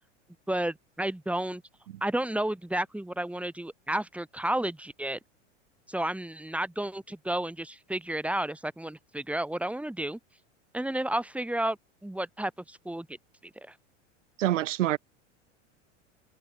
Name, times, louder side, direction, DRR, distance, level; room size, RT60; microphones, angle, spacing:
voice 1, 0.5-1.6 2.0-5.2 5.9-10.2 10.7-13.1 13.6-13.7, right 1 dB, 5° right, 5.6 m, -32 dB
voice 2, 14.4-15.0, right 13 dB, 85° right, 1.5 m, -26 dB
hypercardioid pair, 105°, 36 cm